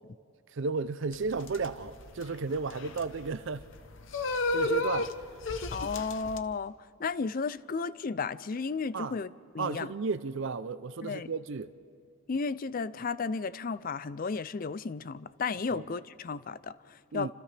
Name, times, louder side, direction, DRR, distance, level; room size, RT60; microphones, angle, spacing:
voice 1, 0.5-3.7 4.5-5.1 8.9-9.1 9.6-11.7 15.7-15.8 17.1-17.3, right 4 dB, 60° right, 0.5 m, -33 dB
sound 1, 1.1-6.4, left 2 dB, 60° left, 0.9 m, -33 dB
voice 2, 5.7-6.7 7.0-9.9 11.0-11.3 12.3-17.3, left 4 dB, 40° left, 0.4 m, -34 dB
29.0 x 26.5 x 3.4 m
head